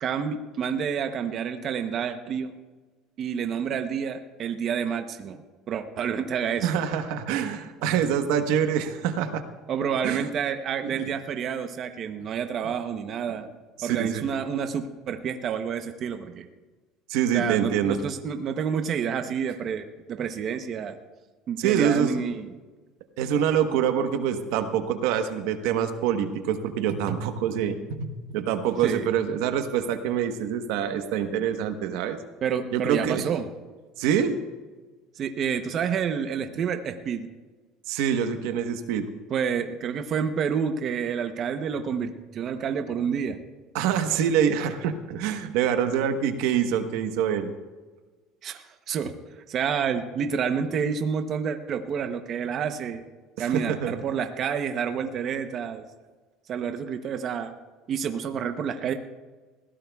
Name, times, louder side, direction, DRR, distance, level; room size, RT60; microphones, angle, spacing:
voice 1, 0.0-2.5 3.2-5.4 5.7-6.7 9.7-13.5 13.8-16.5 17.3-20.9 21.5-22.5 28.8-29.1 32.4-33.5 35.1-37.3 39.3-43.4 48.4-49.1 49.5-53.0 53.4-55.8 56.5-57.5 57.9-58.9, right 7 dB, 45° right, 6 dB, 0.8 m, -29 dB
voice 2, 6.6-9.4 10.0-10.3 10.8-11.0 12.6-12.7 13.8-14.2 17.1-18.0 21.6-22.2 23.2-32.2 32.7-33.2 34.0-34.4 37.9-39.1 43.7-47.5 53.4-54.1, right 8 dB, 75° right, 7 dB, 1.2 m, -25 dB
20.5 x 16.5 x 2.4 m, 1.3 s
cardioid pair, 125°, 0 cm